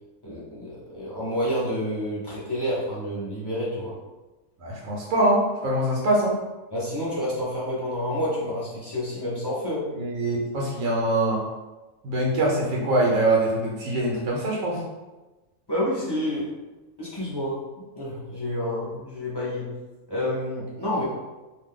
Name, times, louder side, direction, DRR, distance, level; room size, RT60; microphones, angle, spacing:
voice 1, 0.2-3.9 6.7-9.9 15.7-16.5 17.0-17.6 18.0-19.7 20.1-21.0, equal, 25° left, -9 dB, 0.6 m, -29 dB
voice 2, 4.6-6.3 9.9-11.4 12.0-14.8, right 1 dB, 75° right, -3 dB, 1.1 m, -23 dB
2.5 x 2.2 x 3.6 m, 1.1 s
omnidirectional pair, 1.4 m